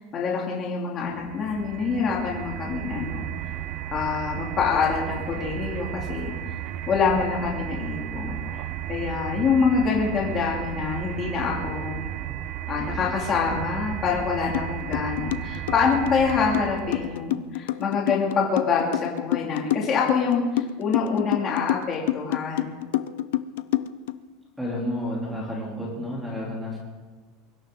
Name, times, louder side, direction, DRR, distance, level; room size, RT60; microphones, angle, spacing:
voice 1, 0.0-3.2 3.9-6.3 6.9-12.0 12.7-22.8, left 5 dB, 25° left, -2 dB, 2.6 m, -26 dB
sound 1, 1.1-17.3, right 12 dB, 40° right, 0.6 m, -34 dB
sound 2, 14.5-14.7 14.9-24.1, left 15 dB, 80° left, 0.7 m, -27 dB
voice 2, 24.6-26.8, left 1 dB, ahead, -4 dB, 3.2 m, -30 dB
23.5 x 13.0 x 3.9 m, 1.4 s
supercardioid pair, 180°, 0 cm